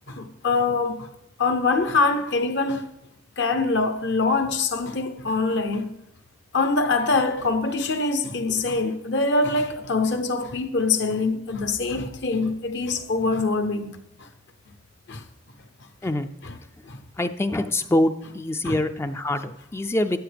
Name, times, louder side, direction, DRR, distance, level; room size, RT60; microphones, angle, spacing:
voice 1, 0.1-1.1 1.4-2.9 3.4-5.9 6.5-13.9 14.2-14.3 15.1-15.2 16.4-16.6 16.8-17.0 18.6-18.8, left 3 dB, 60° left, 0.8 m, -24 dB
voice 2, 17.2-20.2, left 1 dB, 15° left, 0.3 m, -24 dB
12.0 x 8.6 x 3.4 m
head